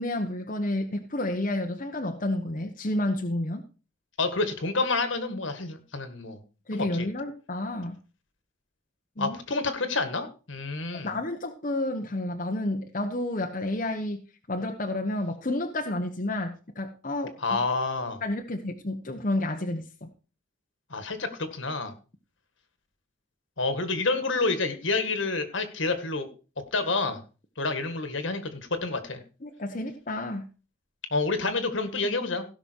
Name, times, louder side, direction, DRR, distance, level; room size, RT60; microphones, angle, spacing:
voice 1, 0.0-3.6 6.7-8.0 9.2-9.4 11.0-14.2 14.5-17.3 18.2-20.1 29.4-30.5, left 1 dB, 40° left, 3 dB, 1.0 m, -30 dB
voice 2, 4.2-6.4 6.7-7.1 9.2-11.1 17.4-18.2 20.9-21.9 23.6-26.3 26.7-27.2 27.6-29.2 31.1-32.5, left 3 dB, 70° left, 9 dB, 1.8 m, -28 dB
16.5 x 6.0 x 4.6 m, 0.35 s
head